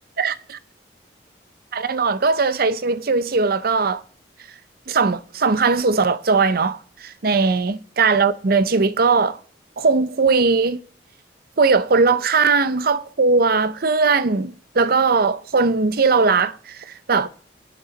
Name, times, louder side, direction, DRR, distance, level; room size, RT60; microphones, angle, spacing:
voice 1, 1.7-4.0 4.9-9.4 9.8-10.8 11.6-17.3, right 4 dB, 60° right, 0.7 m, -19 dB
11.5 x 8.5 x 4.0 m
head